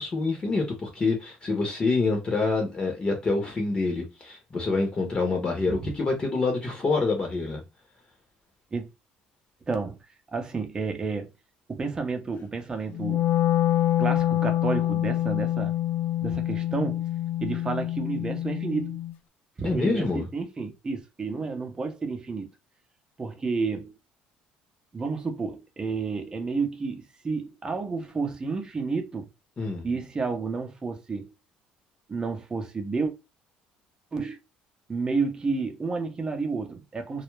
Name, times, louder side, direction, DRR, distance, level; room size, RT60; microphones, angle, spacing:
voice 1, 0.0-7.6 19.6-20.3 29.6-29.9, left 3 dB, 30° left, 0.8 m, -26 dB
voice 2, 9.7-10.0 10.3-11.3 11.7-13.3 14.0-15.7 16.2-17.0 17.4-19.0 19.6-22.5 23.2-24.0 24.9-29.3 29.8-31.3 32.1-33.1 34.1-34.4 34.9-37.2, right 4 dB, 25° right, 0.7 m, -30 dB
Wind instrument woodwind instrument, 12.9-19.1, left 13 dB, 60° left, 0.4 m, -26 dB
2.3 x 2.0 x 3.1 m
cardioid pair, 100°, 3 cm